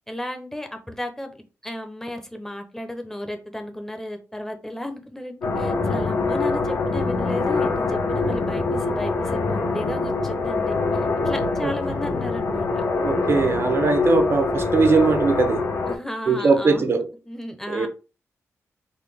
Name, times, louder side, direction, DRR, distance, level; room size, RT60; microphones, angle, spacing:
voice 1, 0.1-1.3 1.6-10.8 11.2-12.8 15.9-17.9, left 1 dB, 5° left, 0.7 m, -34 dB
sound 1, 5.4-16.0, left 3 dB, 60° left, 0.8 m, -24 dB
voice 2, 13.0-15.6 16.3-17.1 17.7-17.9, right 4 dB, 50° right, 0.6 m, -20 dB
3.9 x 2.2 x 3.3 m
wide cardioid pair, 115°, 5 cm